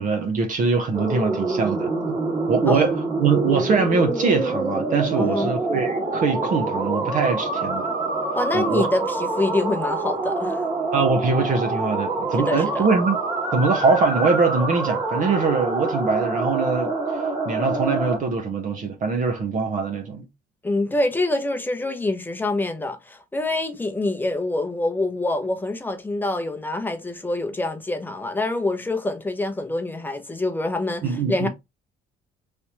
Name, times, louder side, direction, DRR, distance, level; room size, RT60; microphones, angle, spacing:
voice 1, 0.0-2.2 2.5-7.9 8.5-8.9 10.9-13.2 13.5-16.9 17.4-20.2 31.0-31.5, right 4 dB, 50° right, 0.9 m, -22 dB
sound 1, 0.9-18.2, right 2 dB, 25° right, 1.5 m, -26 dB
voice 2, 5.2-5.5 8.3-10.6 12.4-12.9 20.6-31.5, left 2 dB, 10° left, 0.8 m, -26 dB
3.3 x 2.9 x 3.0 m
cardioid pair, 110°, 17 cm